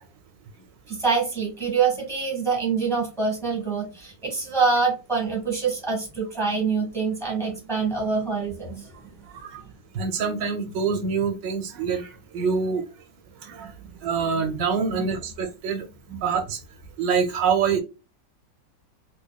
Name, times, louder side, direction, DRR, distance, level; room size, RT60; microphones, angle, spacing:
voice 1, 0.9-9.1 13.5-13.7 14.9-15.1 16.1-16.2, right 5 dB, ahead, 1.4 m, -25 dB
voice 2, 9.9-12.8 13.4-13.7 14.0-15.8 16.2-16.6 17.0-17.8, right 6 dB, 85° right, 1.5 m, -25 dB
4.2 x 3.1 x 2.3 m
omnidirectional pair, 1.9 m